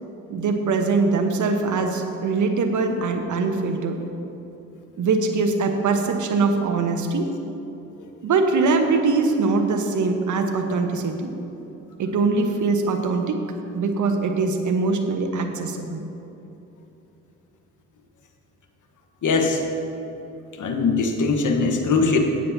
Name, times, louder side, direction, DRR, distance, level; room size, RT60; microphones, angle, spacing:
voice 1, 0.3-4.0 5.0-7.3 8.2-11.3 12.0-13.4 13.7-16.0, right 4 dB, 50° right, 5 dB, 1.1 m, -22 dB
voice 2, 19.2-19.6 20.6-22.2, left 4 dB, 55° left, 4 dB, 1.3 m, -21 dB
17.5 x 7.6 x 2.8 m, 3.0 s
hypercardioid pair, 45°, 37 cm